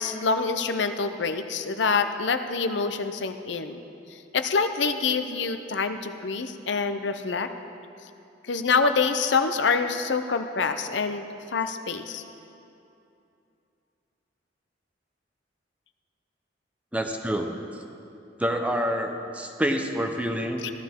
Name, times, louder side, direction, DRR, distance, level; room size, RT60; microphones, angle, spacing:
voice 1, 0.0-3.8 4.3-7.5 8.5-11.2 11.5-12.2 20.6-20.7, left 4 dB, 70° left, 8 dB, 0.6 m, -26 dB
voice 2, 16.9-17.5 18.4-20.7, equal, 10° right, 4 dB, 0.7 m, -27 dB
15.5 x 12.5 x 3.6 m, 2.7 s
head